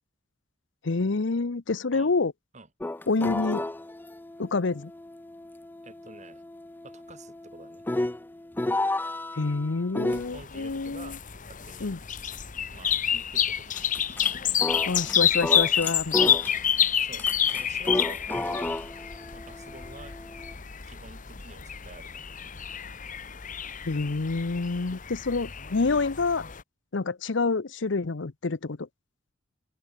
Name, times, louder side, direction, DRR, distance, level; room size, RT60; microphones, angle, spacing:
voice 1, 0.8-2.3 3.1-3.7 4.4-4.9 9.4-11.1 11.8-12.0 14.9-16.4 23.9-26.4 26.9-28.9, left 3 dB, 70° left, 0.8 m, -27 dB
sound 1, 2.8-10.3 13.7-14.3 14.6-16.8 17.2-20.5, left 1 dB, 10° left, 0.4 m, -33 dB
voice 2, 5.8-6.4 6.8-7.9 10.3-11.2 11.5-11.9 12.7-14.2 16.9-18.8 19.3-20.2 20.8-22.3, right 3 dB, 40° right, 3.4 m, -49 dB
sound 2, 10.1-26.6, left 9 dB, 45° left, 1.1 m, -29 dB
open air
head